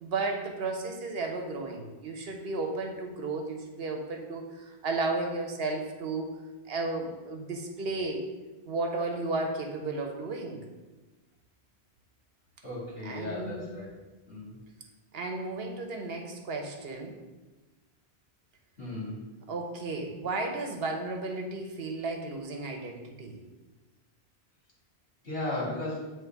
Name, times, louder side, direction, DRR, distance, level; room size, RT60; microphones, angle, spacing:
voice 1, 0.0-6.4 6.7-8.2 8.7-10.6 13.0-13.7 15.1-17.1 19.5-23.4, right 3 dB, 70° right, 3 dB, 1.0 m, -33 dB
voice 2, 12.6-13.9 14.3-14.5 18.8-19.2 25.2-26.1, left 1 dB, 65° left, -6 dB, 2.3 m, -35 dB
8.2 x 3.2 x 4.5 m, 1.2 s
omnidirectional pair, 1.1 m